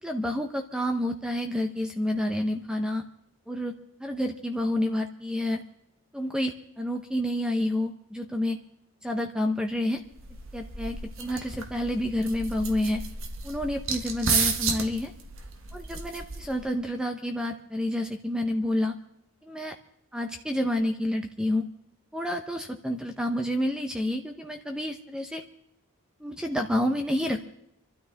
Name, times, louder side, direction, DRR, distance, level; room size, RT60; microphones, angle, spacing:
voice 1, 0.0-3.0 3.5-3.7 4.0-5.6 6.1-8.6 9.0-10.0 10.5-13.0 13.4-15.1 15.7-18.9 19.4-19.8 20.1-21.7 22.1-25.4 26.2-27.5, left 1 dB, 5° right, 4 dB, 0.8 m, -29 dB
sound 1, 10.0-16.7, right 5 dB, 60° right, 1.7 m, -32 dB
27.0 x 12.5 x 3.5 m, 0.77 s
head